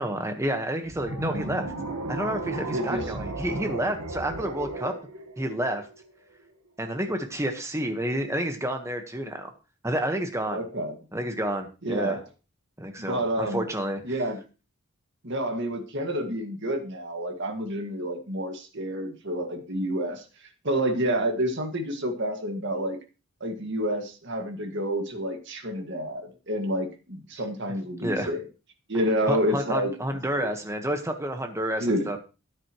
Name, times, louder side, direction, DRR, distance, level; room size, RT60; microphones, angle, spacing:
voice 1, 0.0-1.7 2.1-4.9 5.4-5.8 6.8-9.5 9.8-10.6 11.1-12.2 12.8-14.0 28.0-28.3 29.3-32.2, right 1 dB, 15° right, 5 dB, 1.3 m, -29 dB
sound 1, 0.9-6.1, right 2 dB, 90° right, 1.5 m, -35 dB
voice 2, 2.7-3.1 10.5-11.0 11.8-12.2 13.0-13.6 14.0-14.4 15.2-20.2 20.6-23.0 23.4-28.4 28.9-30.5 31.8-32.2, equal, 55° right, 4 dB, 1.9 m, -29 dB
13.0 x 9.8 x 3.1 m, 0.31 s
head